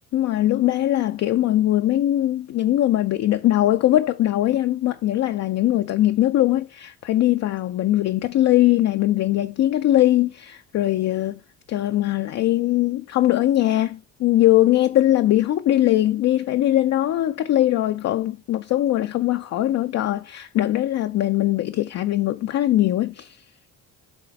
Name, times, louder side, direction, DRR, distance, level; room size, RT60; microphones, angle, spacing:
voice 1, 0.1-11.4 11.7-23.4, left 14 dB, 40° left, 0.4 m, -21 dB
7.1 x 3.9 x 4.3 m
figure-of-eight pair, 40°, 47 cm